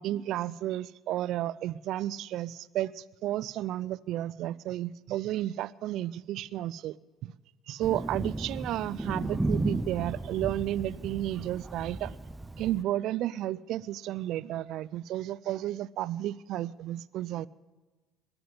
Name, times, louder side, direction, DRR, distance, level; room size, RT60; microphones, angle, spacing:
voice 1, 0.0-7.0 7.2-7.3 7.7-12.2 12.6-17.5, right 13 dB, 65° right, 0.4 m, -32 dB
Thunder, 7.8-12.8, right 2 dB, 15° right, 0.7 m, -34 dB
21.5 x 7.8 x 7.8 m
hypercardioid pair, 60°, 0 cm